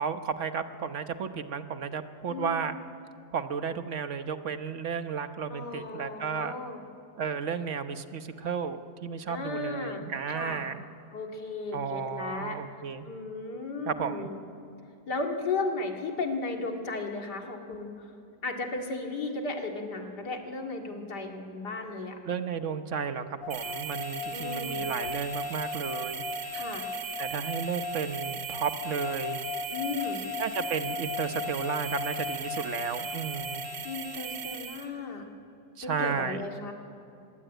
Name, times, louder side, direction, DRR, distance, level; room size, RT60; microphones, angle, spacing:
voice 1, 0.0-2.7 3.3-6.5 7.2-10.8 11.7-13.1 13.9-14.3 22.3-26.2 27.2-29.4 30.4-33.6 35.8-36.4, right 6 dB, 50° right, 9 dB, 1.3 m, -33 dB
voice 2, 2.3-2.6 5.5-6.8 9.3-10.6 11.1-12.6 13.0-14.4 15.1-18.1 18.4-22.2 24.3-24.8 26.5-26.9 29.7-30.2 33.8-35.3 35.8-36.7, left 3 dB, 85° left, 2 dB, 2.8 m, -35 dB
sound 1, 23.4-34.6, left 4 dB, 55° left, 2.2 m, -38 dB
sound 2, 23.5-34.9, right 6 dB, 85° right, 2.1 m, -39 dB
25.0 x 21.5 x 9.1 m, 2.8 s
omnidirectional pair, 1.7 m